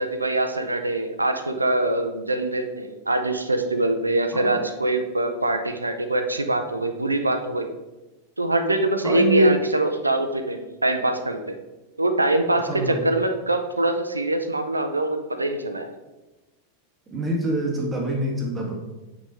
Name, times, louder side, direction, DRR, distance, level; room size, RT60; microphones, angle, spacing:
voice 1, 0.0-7.7 8.4-11.5 12.0-15.9, right 2 dB, 80° right, 7 dB, 0.6 m, -24 dB
voice 2, 9.0-9.7 12.7-13.1 17.1-18.8, right 1 dB, 15° right, -2 dB, 1.7 m, -24 dB
6.0 x 5.0 x 4.2 m, 1.1 s
figure-of-eight pair, 90°, 0 cm